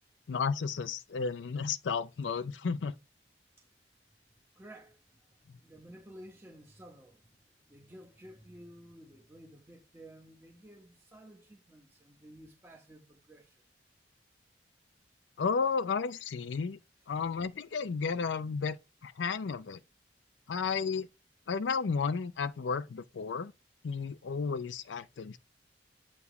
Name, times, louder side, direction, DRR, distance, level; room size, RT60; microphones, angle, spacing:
voice 1, 0.3-3.0 15.4-16.8 17.1-18.8 19.0-19.8 20.5-21.1 21.5-23.5 23.8-25.4, left 5 dB, 90° left, 0.5 m, -33 dB
voice 2, 4.6-5.0 5.3-13.6, right 1 dB, 15° right, 1.0 m, -53 dB
8.3 x 3.0 x 4.7 m
head